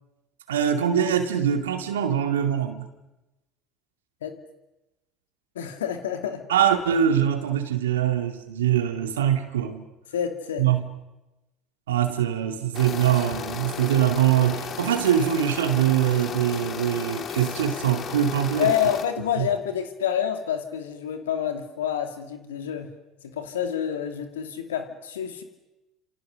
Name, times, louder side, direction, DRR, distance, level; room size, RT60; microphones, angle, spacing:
voice 1, 0.5-2.9 6.5-9.9 10.6-10.8 11.9-18.7 19.4-19.5, right 10 dB, 80° right, 7 dB, 2.4 m, -23 dB
voice 2, 5.5-6.5 10.1-10.7 18.6-23.0 23.2-25.4, left 9 dB, 80° left, 7 dB, 2.5 m, -28 dB
sound 1, 12.7-19.1, left 7 dB, 45° left, 2.8 m, -34 dB
29.0 x 27.5 x 6.6 m, 1.0 s
hypercardioid pair, 65°, 0 cm